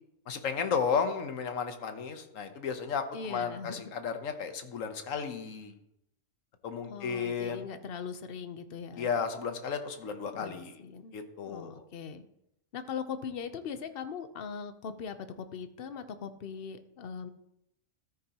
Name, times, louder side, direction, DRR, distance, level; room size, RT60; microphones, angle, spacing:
voice 1, 0.3-3.0 3.3-5.8 6.6-7.6 9.0-10.7 11.1-11.8, left 6 dB, 75° left, 8 dB, 1.3 m, -33 dB
voice 2, 3.1-3.9 6.9-9.1 10.3-11.2 11.5-12.2 12.7-17.3, left 6 dB, 50° left, 11 dB, 0.8 m, -40 dB
13.5 x 8.9 x 2.9 m, 0.81 s
omnidirectional pair, 1.4 m